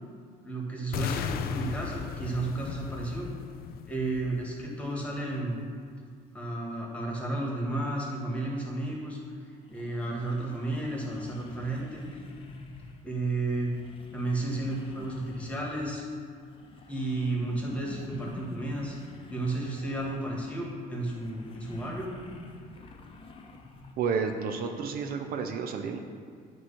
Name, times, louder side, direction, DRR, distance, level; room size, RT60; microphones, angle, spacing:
voice 1, 0.4-3.3 3.9-5.6 6.3-9.2 9.7-12.1 13.0-13.7 14.1-16.0 16.9-19.0 19.3-22.1, right 2 dB, 10° left, -3 dB, 1.7 m, -32 dB
sound 1, 0.9-4.9, left 8 dB, 60° left, 0.4 m, -36 dB
sound 2, 9.6-13.1 13.5-16.1 16.4-23.9, left 3 dB, 30° left, 0.7 m, -48 dB
voice 2, 24.0-26.0, right 6 dB, 60° right, 4 dB, 0.5 m, -31 dB
9.2 x 3.1 x 5.6 m, 2.2 s
cardioid pair, 110°, 17 cm